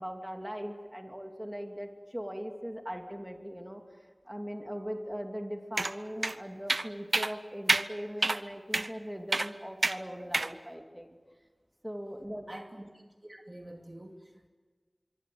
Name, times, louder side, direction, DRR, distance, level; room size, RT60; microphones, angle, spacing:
voice 1, 0.0-3.8 4.2-11.2 11.8-12.4, equal, 10° right, 3 dB, 2.9 m, -40 dB
sound 1, 5.8-5.9 6.2-6.3 6.7-6.9 7.1-7.3 7.7-7.8 8.2-8.4 8.7-8.9 9.3-9.5 9.8-10.0 10.3-10.5, right 2 dB, 75° right, 0.8 m, -27 dB
voice 2, 12.5-14.5, right 1 dB, 35° right, 2 dB, 2.5 m, -47 dB
25.0 x 23.5 x 8.0 m, 1.4 s
wide cardioid pair, 40°, 0 cm